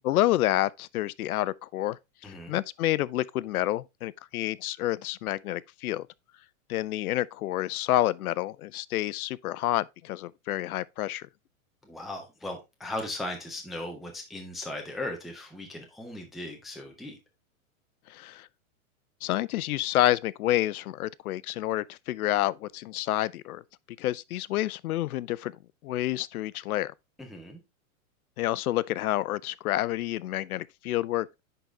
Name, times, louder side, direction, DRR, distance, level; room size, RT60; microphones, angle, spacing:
voice 1, 0.0-6.1 6.7-11.3 18.1-18.5 19.2-23.6 24.0-25.5 25.8-26.9 28.4-31.4, left 15 dB, 80° left, 0.6 m, -29 dB
voice 2, 2.2-2.6 11.8-17.2 27.2-27.6, left 1 dB, ahead, 0.3 m, -38 dB
10.0 x 3.9 x 3.2 m
hypercardioid pair, 140°, 43 cm